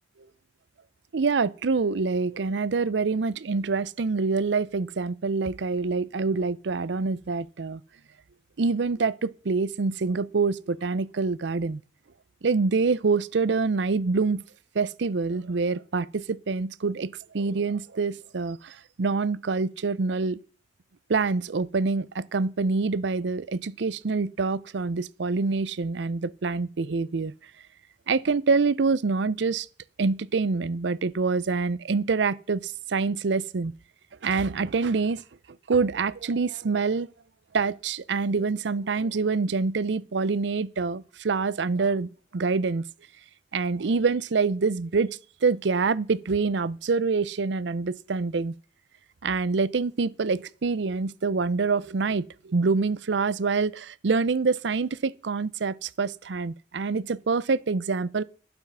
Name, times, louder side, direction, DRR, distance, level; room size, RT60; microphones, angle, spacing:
voice 1, 1.1-7.8 8.6-11.8 12.4-14.4 14.7-20.4 21.1-27.3 28.1-29.7 30.0-33.7 34.2-35.2 35.7-37.1 37.5-42.8 43.5-48.5 49.2-58.2, right 4 dB, 70° right, 0.6 m, -26 dB
11.5 x 7.1 x 5.6 m
head